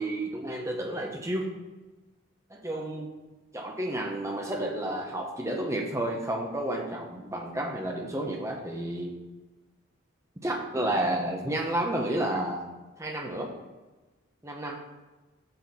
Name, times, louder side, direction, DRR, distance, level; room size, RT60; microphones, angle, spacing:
voice 1, 0.0-1.5 2.6-3.1 3.5-9.1 10.4-12.6 13.0-13.5 14.4-14.8, right 1 dB, 15° right, 1 dB, 0.9 m, -31 dB
6.6 x 6.5 x 4.2 m, 1.2 s
head